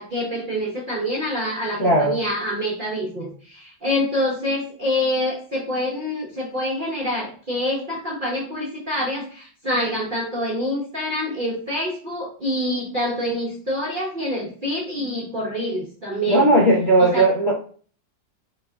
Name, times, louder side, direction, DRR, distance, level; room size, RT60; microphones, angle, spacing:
voice 1, 0.0-16.5 17.0-17.3, left 1 dB, 40° right, -6 dB, 0.7 m, -26 dB
voice 2, 1.8-2.2 16.3-17.5, right 1 dB, 50° left, -5 dB, 0.7 m, -17 dB
4.6 x 2.4 x 3.3 m, 0.43 s
omnidirectional pair, 2.0 m